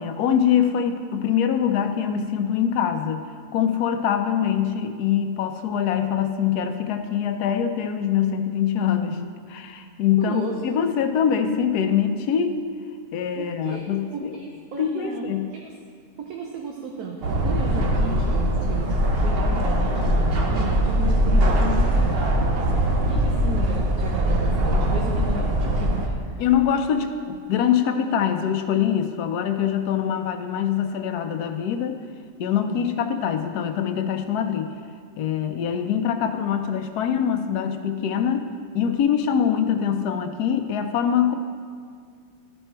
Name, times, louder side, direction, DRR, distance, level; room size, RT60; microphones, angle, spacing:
voice 1, 0.0-9.2 9.5-12.6 13.1-14.4 14.8-15.5 26.4-32.0 32.4-34.7 35.2-38.5 38.7-41.3, left 8 dB, 80° left, 7 dB, 1.1 m, -24 dB
voice 2, 10.2-10.7 13.4-13.8 14.1-15.3 16.2-19.0 19.2-26.4 32.7-32.9, right 5 dB, 75° right, 0 dB, 1.2 m, -34 dB
sound 1, 17.2-26.1, equal, 50° right, 0.8 m, -21 dB
12.5 x 4.4 x 4.4 m, 2.1 s
omnidirectional pair, 1.6 m